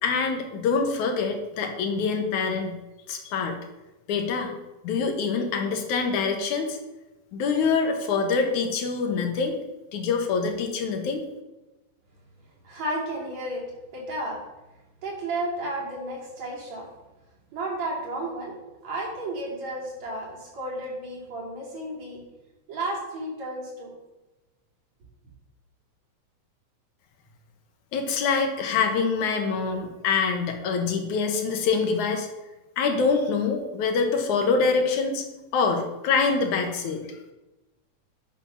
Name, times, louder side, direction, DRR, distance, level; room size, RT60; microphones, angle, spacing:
voice 1, 0.0-2.8 3.1-3.6 4.1-4.5 4.8-6.8 7.3-9.6 9.9-11.2 27.9-32.3 32.8-35.2 35.5-37.0, left 5 dB, 80° left, 3 dB, 2.7 m, -25 dB
voice 2, 12.6-13.6 13.9-14.4 15.0-16.9 17.5-18.5 18.8-22.2 22.7-23.9, right 1 dB, 65° right, -3 dB, 4.2 m, -32 dB
11.0 x 7.2 x 5.8 m, 1.0 s
omnidirectional pair, 3.4 m